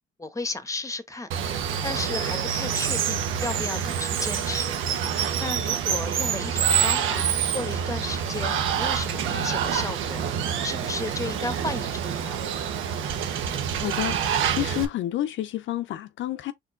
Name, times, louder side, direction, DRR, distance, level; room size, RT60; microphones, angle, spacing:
voice 1, 0.2-1.3 1.8-4.8 5.4-10.2 10.6-12.4, left 3 dB, 15° left, 1.0 m, -34 dB
Water, 1.3-14.9, right 8 dB, 80° right, 1.0 m, -27 dB
voice 2, 13.8-16.5, left 14 dB, 75° left, 0.5 m, -29 dB
4.4 x 2.9 x 3.8 m
cardioid pair, 90°, 20 cm